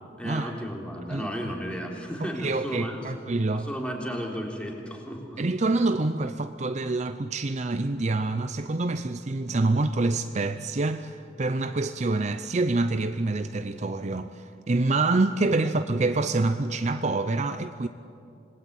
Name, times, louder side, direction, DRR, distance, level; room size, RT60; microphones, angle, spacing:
voice 1, 0.2-3.0 3.5-5.4, equal, 5° left, 3.6 m, -34 dB
voice 2, 2.2-3.7 5.4-17.9, right 2 dB, 40° right, 0.6 m, -26 dB
26.5 x 20.5 x 9.0 m
head